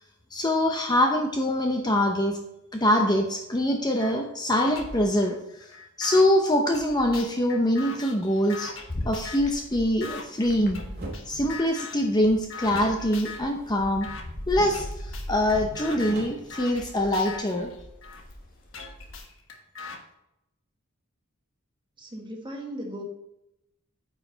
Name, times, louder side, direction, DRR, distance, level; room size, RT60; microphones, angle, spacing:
voice 1, 0.3-2.4 2.7-5.4 6.0-8.7 9.0-10.8 11.3-14.1 14.5-17.7, left 1 dB, 20° left, 2 dB, 0.8 m, -24 dB
sound 1, 4.0-4.1 4.5-6.2 6.7-9.6 10.0-10.2 10.7-11.2 11.5-12.1 12.5-13.5 14.0-14.2 14.7-18.2 18.7-20.0, left 4 dB, 65° left, 1.2 m, -40 dB
sound 2, 8.9-11.7 12.0-19.2, left 1 dB, 45° left, 1.4 m, -40 dB
sound 3, 10.9-11.2 12.6-14.2 14.5-14.9 15.2-15.3 15.7-17.2, right 1 dB, 50° right, 2.6 m, -40 dB
voice 2, 22.0-23.0, right 1 dB, 20° right, 1 dB, 1.5 m, -37 dB
9.2 x 5.7 x 4.0 m, 0.86 s
head